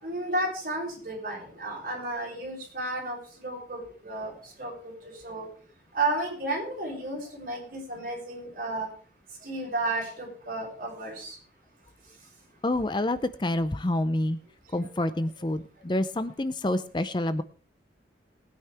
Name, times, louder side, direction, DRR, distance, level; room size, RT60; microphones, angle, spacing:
voice 1, 0.0-5.5 5.9-8.9 9.4-11.4 14.7-15.1, right 2 dB, 50° right, -2 dB, 6.2 m, -33 dB
voice 2, 12.6-14.4 14.7-17.4, left 1 dB, 25° left, 13 dB, 0.5 m, -28 dB
20.0 x 9.3 x 3.4 m, 0.41 s
head